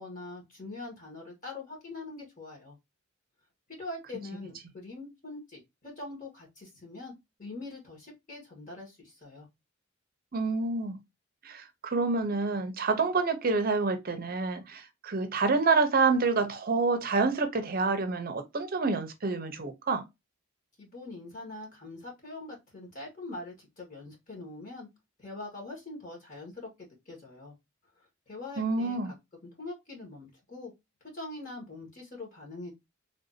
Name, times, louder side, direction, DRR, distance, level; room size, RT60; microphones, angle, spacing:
voice 1, 0.0-2.8 3.7-7.1 7.4-9.5 20.8-24.9 25.2-27.5 28.3-29.1 29.6-30.7 31.1-32.7, left 2 dB, 40° left, 1.4 m, -43 dB
voice 2, 10.3-11.0 11.4-20.0 28.6-29.1, right 4 dB, 45° right, 0.6 m, -28 dB
3.4 x 2.6 x 2.6 m
head